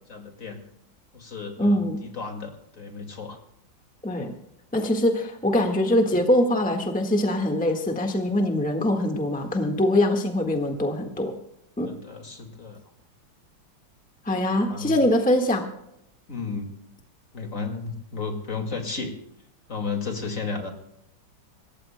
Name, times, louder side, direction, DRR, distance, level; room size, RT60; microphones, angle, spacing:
voice 1, 0.1-0.6 1.1-3.4 11.8-12.8 14.7-15.0 16.3-16.7 17.3-19.2 19.7-20.7, left 4 dB, 45° left, 4 dB, 2.4 m, -33 dB
voice 2, 1.6-2.0 4.0-4.3 4.7-11.3 11.8-11.9 14.2-15.6, left 1 dB, 5° left, 3 dB, 1.3 m, -23 dB
26.5 x 15.0 x 2.2 m, 0.79 s
omnidirectional pair, 2.1 m